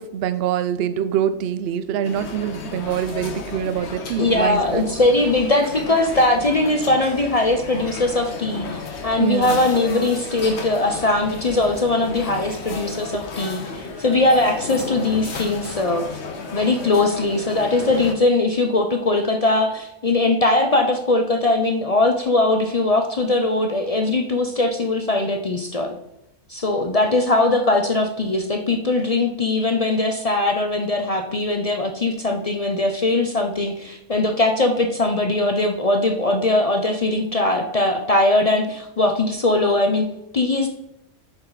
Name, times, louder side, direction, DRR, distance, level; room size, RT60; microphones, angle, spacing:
voice 1, 0.0-4.8 9.2-9.6, right 9 dB, 60° right, 12 dB, 0.7 m, -24 dB
sound 1, 2.0-18.2, left 4 dB, 60° left, 1.2 m, -33 dB
voice 2, 4.2-16.1 16.5-26.0 26.5-40.7, left 2 dB, 45° left, 5 dB, 0.5 m, -20 dB
7.0 x 5.5 x 4.0 m, 0.85 s
omnidirectional pair, 1.3 m